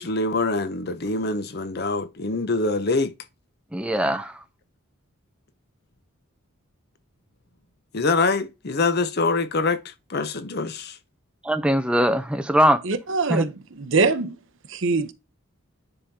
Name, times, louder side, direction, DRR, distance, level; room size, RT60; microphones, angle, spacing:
voice 1, 0.0-3.1 7.9-11.0, left 3 dB, 45° left, 0.7 m, -24 dB
voice 2, 3.7-4.3 11.5-12.8 13.3-13.4, equal, 5° right, 0.5 m, -21 dB
voice 3, 12.8-14.4 14.7-15.1, right 4 dB, 60° right, 0.7 m, -23 dB
10.0 x 3.7 x 2.7 m
head